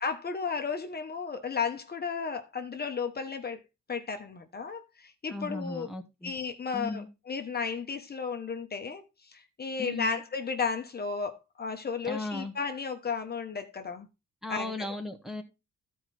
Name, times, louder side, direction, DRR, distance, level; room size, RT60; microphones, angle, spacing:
voice 1, 0.0-3.6 3.9-5.9 6.2-14.1 14.5-14.9, left 5 dB, 35° left, 1.0 m, -34 dB
voice 2, 5.3-6.3 6.7-7.1 9.8-10.2 12.0-12.5 14.4-15.4, left 2 dB, ahead, 1.2 m, -36 dB
13.5 x 4.7 x 4.1 m
wide cardioid pair, 160°, 30 cm